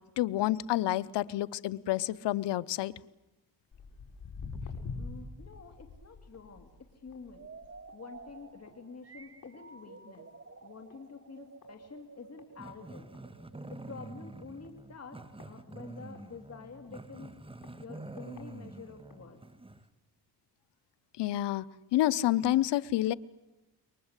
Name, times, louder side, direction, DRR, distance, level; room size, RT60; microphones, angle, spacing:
voice 1, 0.2-2.9 21.2-21.7 21.9-23.1, left 14 dB, 90° left, 17 dB, 0.9 m, -28 dB
Walk footsteps, 3.7-10.4 10.7-11.1 11.6-11.7 12.4-12.5 12.9-13.0 13.1-13.2 13.8-14.0 14.6-16.2 16.8-16.9 17.6-17.7 18.2-18.4 19.1-19.2, left 4 dB, 55° left, 5.3 m, -45 dB
voice 2, 5.0-7.5 7.9-10.3 10.6-13.1 13.6-17.3 17.8-19.4, left 5 dB, 40° left, 5 dB, 3.0 m, -48 dB
sound 1, 7.3-14.0, right 4 dB, 35° right, 2.3 m, -52 dB
Growling, 12.6-19.9, right 2 dB, 15° right, 1.5 m, -47 dB
28.5 x 23.5 x 8.2 m, 1.0 s
cardioid pair, 85°, 40 cm